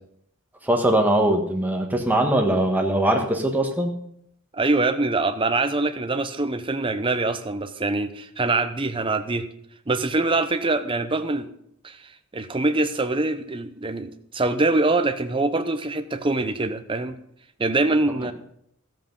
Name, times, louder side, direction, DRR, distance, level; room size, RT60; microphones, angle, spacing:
voice 1, 0.6-3.9 18.2-18.3, right 1 dB, 10° right, 2 dB, 1.3 m, -21 dB
voice 2, 4.5-9.5 9.9-11.5 11.8-12.0 12.3-17.2 17.6-18.3, right 2 dB, 25° right, 9 dB, 0.7 m, -24 dB
14.0 x 7.6 x 5.3 m, 0.71 s
head